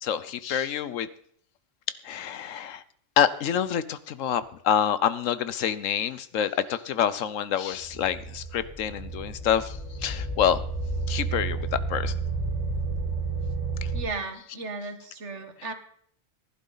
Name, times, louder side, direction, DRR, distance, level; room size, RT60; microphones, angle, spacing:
voice 1, 0.0-1.1 2.0-2.8 3.2-10.6 11.1-12.1 13.8-13.9, left 9 dB, 90° left, 15 dB, 1.1 m, -27 dB
sound 1, 7.8-14.0, right 3 dB, 30° left, 3.1 m, -31 dB
voice 2, 13.9-15.7, right 3 dB, 65° right, 8 dB, 1.7 m, -35 dB
15.5 x 11.0 x 4.0 m, 0.63 s
omnidirectional pair, 1.3 m